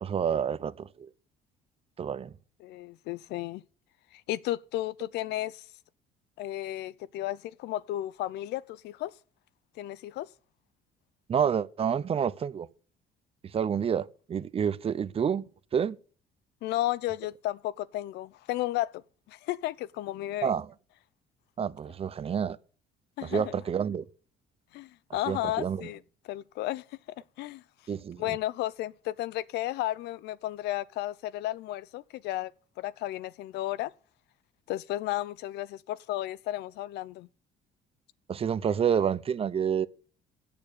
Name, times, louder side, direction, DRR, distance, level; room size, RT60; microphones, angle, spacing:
voice 1, 0.0-1.1 2.0-2.3 11.3-12.7 13.4-15.4 15.7-16.0 20.4-20.7 21.6-22.6 23.2-24.0 25.3-25.9 27.9-28.4 38.3-39.9, right 7 dB, 35° right, 0.6 m, -28 dB
voice 2, 2.6-3.6 4.1-5.6 6.4-9.1 9.8-10.3 16.6-19.0 19.3-20.5 23.2-23.6 24.7-26.0 26.3-26.8 27.4-27.6 28.2-32.5 32.8-33.9 34.7-37.3, left 15 dB, 80° left, 0.6 m, -33 dB
8.6 x 7.0 x 8.4 m
cardioid pair, 110°, 17 cm